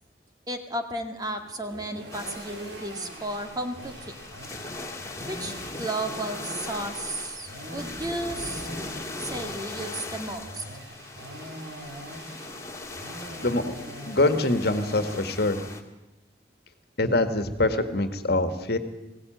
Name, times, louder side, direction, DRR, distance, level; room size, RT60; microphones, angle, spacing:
voice 1, 0.5-4.1 5.3-8.7 9.2-10.6, right 1 dB, 20° right, 5 dB, 1.9 m, -33 dB
sound 1, 1.1-15.2, right 1 dB, 65° right, 3.9 m, -43 dB
sound 2, 2.1-15.8, left 2 dB, 15° left, 2.1 m, -39 dB
voice 2, 13.4-13.8 14.1-15.6 17.0-18.8, left 2 dB, 60° left, 8 dB, 1.8 m, -24 dB
21.0 x 17.0 x 9.2 m, 1.0 s
head